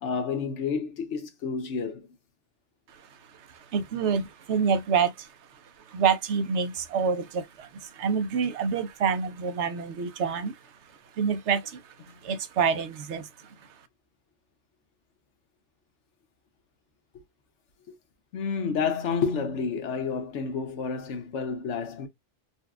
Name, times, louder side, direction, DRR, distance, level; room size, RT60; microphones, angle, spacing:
voice 1, 0.0-2.1 12.1-12.2 17.9-18.0 18.3-22.1, left 5 dB, 80° left, 1.1 m, -30 dB
voice 2, 2.9-13.8, right 6 dB, 75° right, 1.0 m, -28 dB
4.1 x 2.2 x 2.3 m
omnidirectional pair, 1.2 m